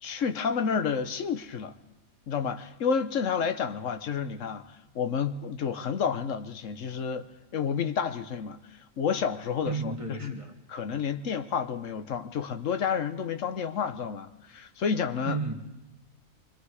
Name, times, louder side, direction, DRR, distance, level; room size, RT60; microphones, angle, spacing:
voice 1, 0.0-1.7 2.3-7.3 7.5-10.4 10.7-15.4, left 6 dB, 60° left, 1.3 m, -30 dB
voice 2, 9.6-10.6 15.2-15.5, right 4 dB, 20° right, 1.9 m, -32 dB
25.5 x 24.5 x 4.9 m
omnidirectional pair, 1.5 m